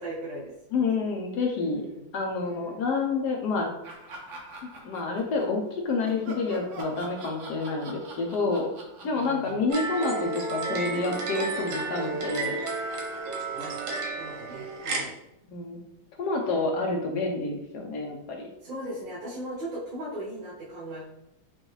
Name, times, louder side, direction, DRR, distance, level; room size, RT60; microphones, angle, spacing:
voice 1, 0.0-1.1 1.7-2.1 2.4-2.9 9.0-9.6 13.1-13.8 14.2-15.1 18.6-21.0, right 1 dB, 70° right, -8 dB, 2.1 m, -39 dB
voice 2, 0.7-1.8 2.1-3.7 4.8-8.7 9.0-12.6 15.5-15.8 16.2-18.4, left 3 dB, 65° left, 1 dB, 1.1 m, -28 dB
Laughter, 3.8-5.6 6.0-10.4 10.7-14.3, right 3 dB, 55° right, 0.9 m, -44 dB
sound 1, 9.7-15.0, right 3 dB, 85° right, 1.7 m, -32 dB
6.1 x 2.6 x 3.1 m, 0.82 s
omnidirectional pair, 2.2 m